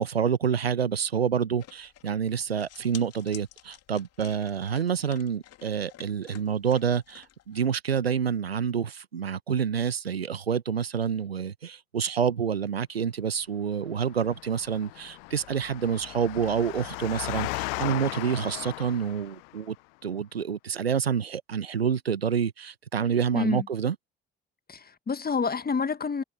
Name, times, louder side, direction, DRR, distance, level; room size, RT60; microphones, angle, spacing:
voice 1, 0.0-19.7 20.0-24.0, right 7 dB, 90° right, 1.0 m, -28 dB
sound 1, 1.6-7.8, left 12 dB, 55° left, 2.9 m, -51 dB
Engine, 14.0-19.6, left 28 dB, 70° left, 0.8 m, -37 dB
voice 2, 23.3-23.7 24.7-26.2, left 5 dB, 30° left, 1.9 m, -28 dB
figure-of-eight pair, 50°, 30 cm